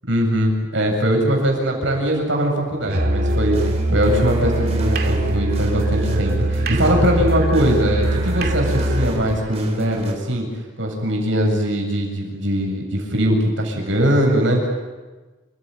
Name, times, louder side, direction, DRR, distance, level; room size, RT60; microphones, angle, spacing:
voice 1, 0.1-3.6 3.9-10.5 10.8-14.7, equal, 70° right, 1 dB, 7.9 m, -21 dB
Musical instrument, 2.9-9.2, right 1 dB, 50° right, 2.3 m, -22 dB
sound 1, 3.3-10.1, right 1 dB, 30° right, 4.2 m, -32 dB
30.0 x 16.5 x 9.9 m, 1.2 s
head